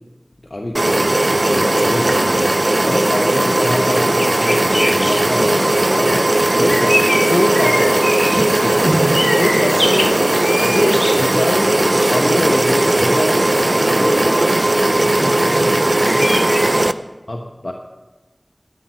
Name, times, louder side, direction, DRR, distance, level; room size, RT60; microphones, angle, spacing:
voice 1, 0.5-6.2 6.6-9.0 9.3-10.2 10.6-14.3 17.3-17.7, left 1 dB, 60° left, 2 dB, 1.1 m, -24 dB
sound 1, 0.7-16.9, right 1 dB, 55° right, 0.5 m, -16 dB
sound 2, 4.0-16.7, left 1 dB, 45° left, 1.3 m, -27 dB
voice 2, 13.6-16.9, left 1 dB, 85° left, 2 dB, 2.9 m, -34 dB
13.0 x 10.5 x 6.5 m, 1.2 s
wide cardioid pair, 45°, 0 cm